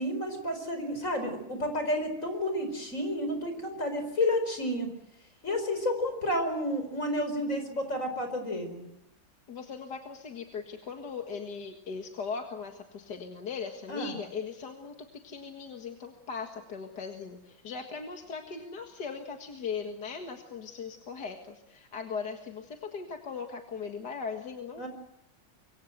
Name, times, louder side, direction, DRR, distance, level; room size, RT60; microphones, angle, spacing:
voice 1, 0.0-4.9 5.4-8.9 13.9-14.1 24.8-24.9, left 1 dB, 40° left, 7 dB, 5.1 m, -31 dB
voice 2, 9.5-15.0 15.2-24.9, left 5 dB, 55° left, 4 dB, 2.3 m, -39 dB
25.5 x 24.0 x 7.8 m, 0.82 s
omnidirectional pair, 2.1 m